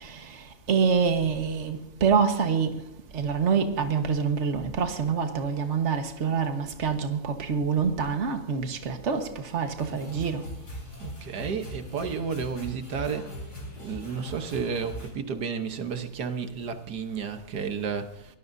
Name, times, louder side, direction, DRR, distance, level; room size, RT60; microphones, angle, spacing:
voice 1, 0.0-2.8 3.1-10.4, right 6 dB, 45° right, 1.7 m, -26 dB
sound 1, 9.8-15.1, equal, 85° left, 5.3 m, -40 dB
voice 2, 11.0-13.3 13.8-18.4, right 6 dB, 85° right, 1.8 m, -32 dB
23.5 x 18.0 x 2.7 m
omnidirectional pair, 1.7 m